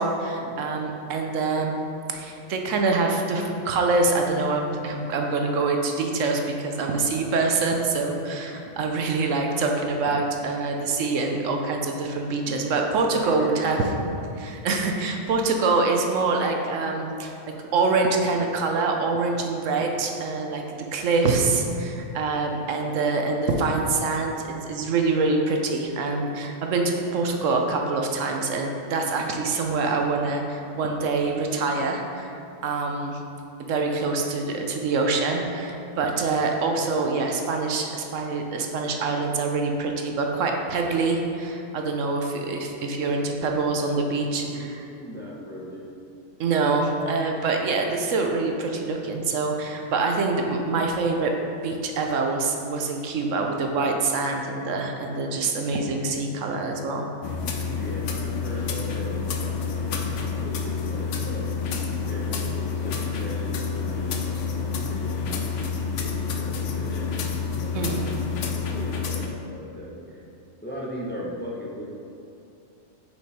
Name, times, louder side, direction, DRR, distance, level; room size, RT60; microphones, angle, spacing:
voice 1, 0.0-1.8 2.1-13.8 14.4-17.3 17.7-33.2 33.6-44.9 46.4-51.3 51.6-57.1 67.7-68.0, right 3 dB, 75° right, 2 dB, 1.1 m, -25 dB
voice 2, 12.3-12.8 13.1-14.0 43.8-44.7 45.0-45.9 57.7-61.6 62.1-67.1 67.6-70.2 70.6-71.8, equal, 10° left, -4 dB, 0.6 m, -39 dB
sound 1, 57.2-69.3, left 5 dB, 70° left, 0.9 m, -28 dB
6.7 x 5.0 x 4.2 m, 2.7 s
omnidirectional pair, 1.3 m